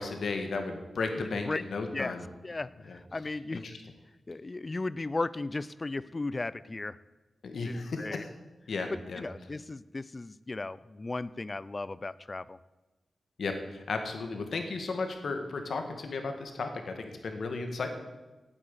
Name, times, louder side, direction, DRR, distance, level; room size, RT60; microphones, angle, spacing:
voice 1, 0.0-2.2 2.9-3.0 3.5-3.7 7.4-8.3 8.7-9.2 13.4-17.9, left 3 dB, 75° left, 6 dB, 1.8 m, -34 dB
voice 2, 1.2-1.6 1.9-2.1 2.4-3.7 4.3-7.0 7.6-8.2 9.2-12.6, left 2 dB, 35° left, 18 dB, 0.5 m, -36 dB
9.0 x 8.7 x 8.6 m, 1.1 s
cardioid pair, 55°, 0 cm